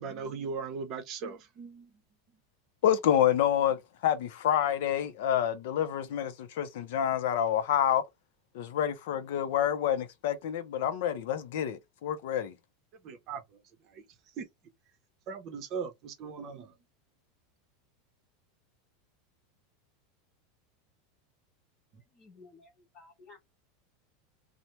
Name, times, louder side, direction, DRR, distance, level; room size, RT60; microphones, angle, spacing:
voice 1, 0.0-1.9 13.0-14.5 15.3-16.7 21.9-22.0, right 5 dB, 35° right, 0.7 m, -39 dB
voice 2, 2.8-3.8 4.0-8.0 8.5-12.5, left 10 dB, 65° left, 0.5 m, -28 dB
voice 3, 22.1-23.4, left 3 dB, 20° left, 1.1 m, -55 dB
2.8 x 2.1 x 3.1 m
supercardioid pair, 165°, 0 cm